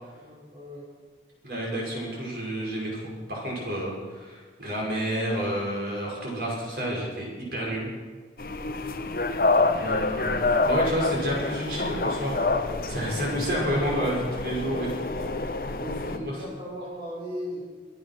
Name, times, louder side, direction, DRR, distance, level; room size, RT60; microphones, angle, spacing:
voice 1, 0.1-0.8 8.6-9.0 15.1-15.3 15.7-17.6, equal, 30° right, -6 dB, 4.7 m, -38 dB
voice 2, 1.4-7.9 9.7-12.4 12.9-14.9 16.1-16.3, equal, 60° right, -3 dB, 5.3 m, -30 dB
sound 1, 8.4-16.2, left 3 dB, 55° left, 0.8 m, -27 dB
23.5 x 8.8 x 6.0 m, 1.4 s
head